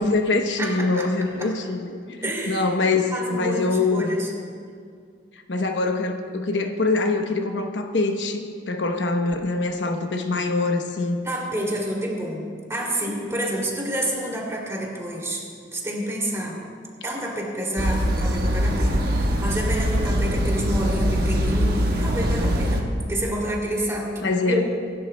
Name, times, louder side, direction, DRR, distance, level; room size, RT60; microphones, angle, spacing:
voice 1, 0.0-4.2 5.5-11.2 24.2-24.6, left 3 dB, 80° left, 4 dB, 0.9 m, -24 dB
voice 2, 0.6-1.5 2.2-2.7 3.1-4.3 11.2-15.4 15.7-16.6 17.0-24.6, right 1 dB, 15° right, -3 dB, 2.8 m, -28 dB
sound 1, 17.8-22.8, equal, 60° right, 1.4 m, -22 dB
25.0 x 12.0 x 2.3 m, 2.2 s
head